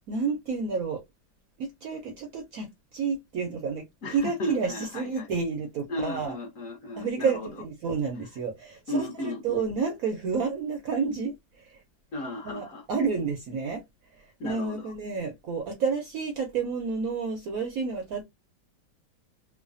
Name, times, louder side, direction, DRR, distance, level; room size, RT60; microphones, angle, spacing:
voice 1, 0.1-1.0 1.6-6.4 7.0-11.8 12.4-13.8 14.1-18.2, right 5 dB, 65° right, 0.9 m, -30 dB
voice 2, 4.0-5.3 5.9-7.5 8.9-9.7 12.1-12.9 14.4-14.9, left 2 dB, 55° left, 1.0 m, -35 dB
3.2 x 2.1 x 2.5 m
omnidirectional pair, 2.1 m